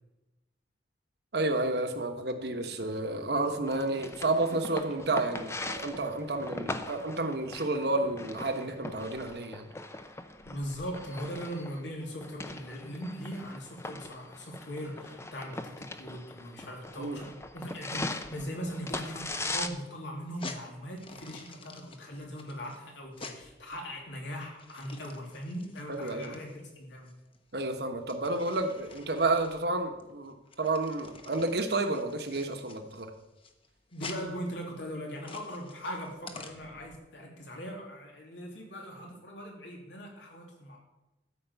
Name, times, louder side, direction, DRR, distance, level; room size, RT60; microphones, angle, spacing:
voice 1, 1.3-9.6 17.0-17.2 25.9-26.4 27.5-33.1, right 2 dB, 60° right, 6 dB, 1.3 m, -31 dB
Fireworks, 2.5-8.7, right 1 dB, 40° right, 1.1 m, -51 dB
sound 1, 3.7-19.7, left 2 dB, 15° left, 0.6 m, -40 dB
voice 2, 10.4-27.1 33.9-40.8, equal, 80° left, 0 dB, 3.1 m, -40 dB
sound 2, 20.2-37.0, left 3 dB, 30° left, 1.0 m, -49 dB
13.5 x 5.2 x 8.2 m, 1.0 s
head